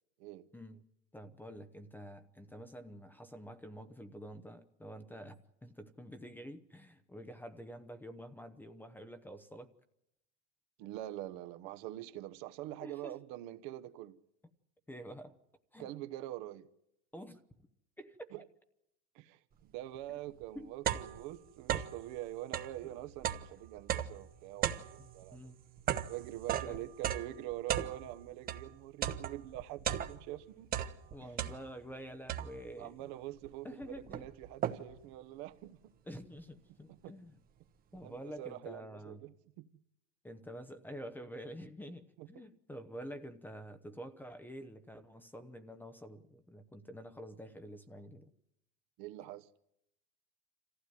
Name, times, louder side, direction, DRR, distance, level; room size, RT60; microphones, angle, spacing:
voice 1, 0.5-0.8 1.1-9.7 12.8-13.2 14.9-15.4 15.7-15.9 17.1-17.4 18.0-18.3 20.5-20.7 25.0-25.6 26.6-26.8 31.1-33.1 33.6-34.2 36.1-37.4 37.9-39.2 40.2-48.3, equal, 5° left, 0.8 m, -48 dB
voice 2, 10.8-14.2 15.8-16.7 18.3-18.4 19.1-25.5 26.1-30.7 32.8-35.9 36.9-37.1 37.9-39.7 42.2-42.3 49.0-49.5, right 14 dB, 50° right, 1.0 m, -45 dB
sound 1, 20.0-20.1 20.4-22.1 22.4-28.7 29.0-30.4 30.7-31.9 32.3-32.8 33.4-33.5 33.8-35.1, right 10 dB, 25° right, 1.0 m, -37 dB
26.5 x 15.0 x 9.4 m
supercardioid pair, 150°, 37 cm